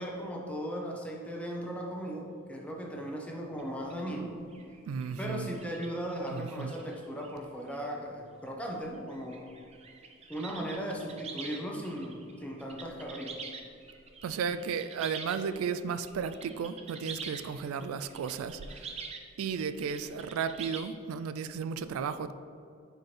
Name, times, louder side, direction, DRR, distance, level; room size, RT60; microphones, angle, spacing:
voice 1, 0.0-4.3 5.2-9.5 10.3-13.3, equal, 5° left, -1 dB, 0.8 m, -37 dB
sound 1, 3.6-3.7 3.9-4.1 4.5-7.4 7.7-7.9 8.5-8.6 8.9-20.8, right 5 dB, 30° right, 0.5 m, -46 dB
voice 2, 4.9-5.5 6.3-6.7 14.2-19.0 19.4-22.3, right 6 dB, 90° right, 12 dB, 0.3 m, -34 dB
9.4 x 4.4 x 3.3 m, 2.4 s
head